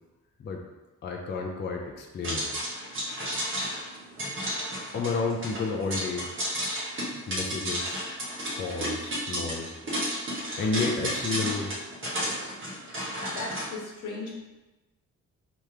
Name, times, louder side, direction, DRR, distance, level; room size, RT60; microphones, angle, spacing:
voice 1, 1.0-2.5 4.9-6.3 7.3-8.0 8.5-9.8 10.6-11.7, left 4 dB, 35° left, 1 dB, 0.4 m, -31 dB
sound 1, 2.2-13.6, equal, 40° right, 1.0 m, -32 dB
voice 2, 13.3-14.4, left 3 dB, 80° left, -1 dB, 1.1 m, -36 dB
3.3 x 3.0 x 4.7 m, 1.1 s
wide cardioid pair, 160°, 31 cm